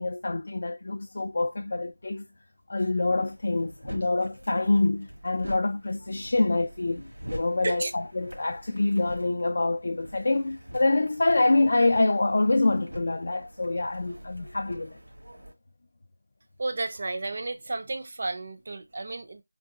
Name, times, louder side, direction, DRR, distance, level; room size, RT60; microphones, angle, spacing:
voice 1, 0.0-2.2 2.7-15.0, left 2 dB, 35° left, 0.3 m, -26 dB
sound 1, 2.9-15.5, right 1 dB, 80° right, 1.7 m, -45 dB
voice 2, 16.6-19.4, right 2 dB, 30° right, 0.5 m, -32 dB
3.7 x 3.6 x 2.4 m
figure-of-eight pair, 175°, 0 cm